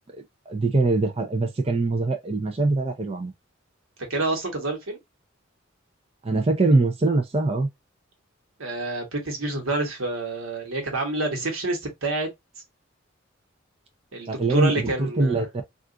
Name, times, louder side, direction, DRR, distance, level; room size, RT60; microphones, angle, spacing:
voice 1, 0.5-3.3 6.2-7.7 14.3-15.5, right 2 dB, 30° right, 0.5 m, -23 dB
voice 2, 4.1-5.0 8.6-12.3 14.1-15.4, right 2 dB, 90° right, 1.2 m, -28 dB
2.4 x 2.4 x 3.7 m
head